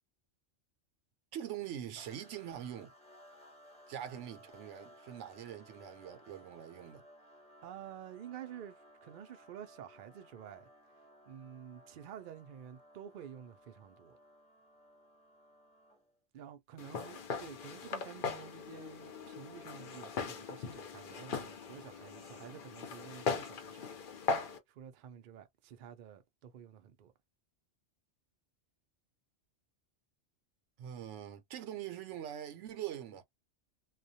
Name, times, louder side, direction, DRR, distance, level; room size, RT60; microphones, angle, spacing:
voice 1, 1.3-2.9 3.9-7.0 30.8-33.2, right 10 dB, 80° right, 0.9 m, -43 dB
sound 1, 2.0-16.2, equal, 5° left, 0.8 m, -60 dB
voice 2, 7.6-8.8 9.0-10.7 11.3-14.2 16.3-23.9 24.7-27.1, right 9 dB, 60° right, 0.5 m, -50 dB
Walk footsteps, 16.8-24.6, left 4 dB, 55° left, 0.7 m, -39 dB
2.3 x 2.1 x 2.7 m
omnidirectional pair, 1.2 m